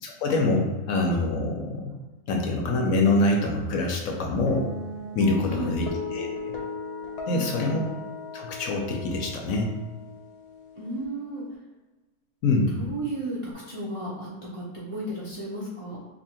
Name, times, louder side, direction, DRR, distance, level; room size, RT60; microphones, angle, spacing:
voice 1, 0.0-1.9 2.3-4.7 5.1-6.5 7.3-7.8 8.3-9.7 12.4-12.7, left 2 dB, 70° left, 0 dB, 1.0 m, -25 dB
sound 1, 4.5-11.0, left 3 dB, 90° left, 1.3 m, -37 dB
voice 2, 5.4-5.8 7.3-7.8 10.7-11.4 12.7-13.4 13.7-14.3 14.5-16.0, right 1 dB, 60° right, -7 dB, 0.3 m, -34 dB
2.8 x 2.7 x 4.3 m, 1.2 s
omnidirectional pair, 1.7 m